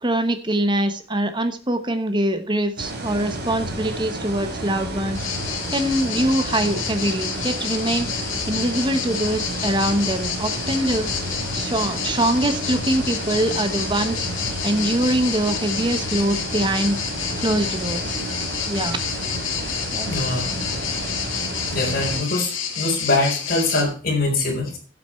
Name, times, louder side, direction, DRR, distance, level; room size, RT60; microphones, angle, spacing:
voice 1, 0.0-5.2 5.7-8.1 8.5-11.1 11.5-14.3 14.6-17.0 17.4-18.2 18.7-19.0 19.9-20.1, right 1 dB, 25° right, 9 dB, 1.1 m, -23 dB
sound 1, 2.8-22.2, right 1 dB, 55° right, 3.4 m, -31 dB
sound 2, 5.1-23.8, left 7 dB, 80° left, 2.2 m, -29 dB
voice 2, 20.1-20.5 21.7-24.8, left 2 dB, 50° left, 0 dB, 4.1 m, -23 dB
11.5 x 7.9 x 4.4 m, 0.40 s
head